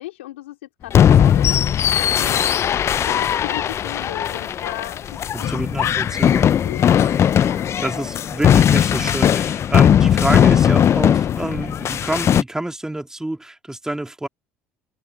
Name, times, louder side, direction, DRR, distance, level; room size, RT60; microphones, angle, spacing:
voice 1, 0.0-1.6 1.9-2.6 3.0-5.5 6.6-7.7, left 16 dB, 85° left, 2.7 m, -35 dB
sound 1, 0.9-12.4, left 9 dB, 45° left, 0.6 m, -18 dB
voice 2, 5.3-6.5 7.0-7.1 7.8-14.3, right 1 dB, 10° right, 2.8 m, -27 dB
open air
hypercardioid pair, 65°, 6 cm